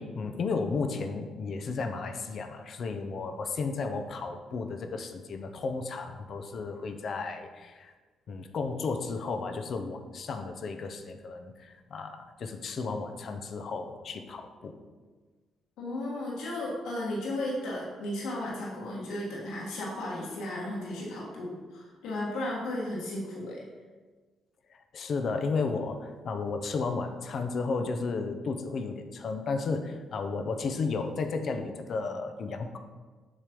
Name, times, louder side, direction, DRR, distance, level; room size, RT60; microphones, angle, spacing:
voice 1, 0.0-7.9 8.3-14.8 24.7-32.8, left 4 dB, 55° left, 6 dB, 0.7 m, -33 dB
voice 2, 15.8-23.6, left 1 dB, 85° left, -4 dB, 1.6 m, -34 dB
7.5 x 3.2 x 5.3 m, 1.4 s
cardioid pair, 90°, 0 cm